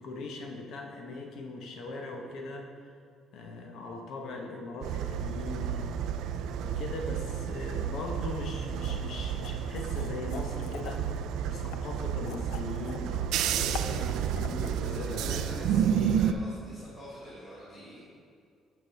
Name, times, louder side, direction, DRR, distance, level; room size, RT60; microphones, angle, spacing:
voice 1, 0.0-2.9 3.3-6.1 6.6-15.5, left 3 dB, 55° left, 2 dB, 1.0 m, -40 dB
sound 1, 4.8-16.3, right 8 dB, 75° right, 0.3 m, -31 dB
sound 2, 8.8-8.9 9.4-11.2 11.6-13.1 13.5-14.7, left 10 dB, 90° left, 0.3 m, -44 dB
voice 2, 13.4-14.0 14.6-18.1, equal, 10° left, -13 dB, 2.0 m, -45 dB
6.6 x 5.3 x 5.7 m, 2.3 s
cardioid pair, 170°, 0 cm